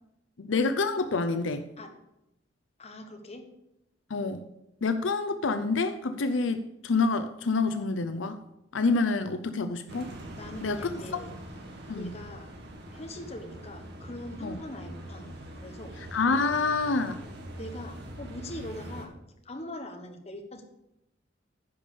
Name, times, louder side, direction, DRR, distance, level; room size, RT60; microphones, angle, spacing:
voice 1, 0.4-1.7 4.1-4.4 4.8-8.4 8.7-10.1 10.6-11.0 11.9-12.2 14.4-14.6 16.1-17.2, left 3 dB, 80° left, 10 dB, 0.6 m, -27 dB
voice 2, 2.8-3.5 10.4-11.3 11.9-12.5 12.9-15.9 17.6-19.1 19.4-20.6, left 1 dB, 35° left, 5 dB, 1.2 m, -42 dB
sound 1, 9.9-19.1, right 1 dB, 60° right, 1.7 m, -43 dB
10.5 x 5.5 x 6.8 m, 0.87 s
head